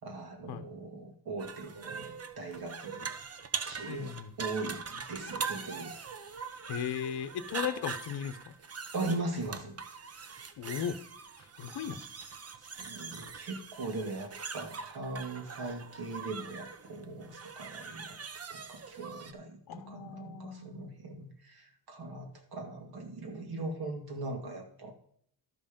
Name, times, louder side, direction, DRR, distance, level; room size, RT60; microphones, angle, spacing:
voice 1, 0.0-3.1 3.6-4.1 4.4-5.9 8.9-9.8 12.6-18.2 18.5-24.9, right 2 dB, 60° right, 3 dB, 2.4 m, -40 dB
sound 1, 1.4-19.3, right 5 dB, 35° right, 0.9 m, -42 dB
voice 2, 3.9-4.3 6.7-8.5 10.6-11.0 11.4-12.0 19.7-20.9, left 9 dB, 60° left, 10 dB, 0.8 m, -37 dB
12.5 x 5.4 x 5.2 m, 0.63 s
cardioid pair, 95°, 43 cm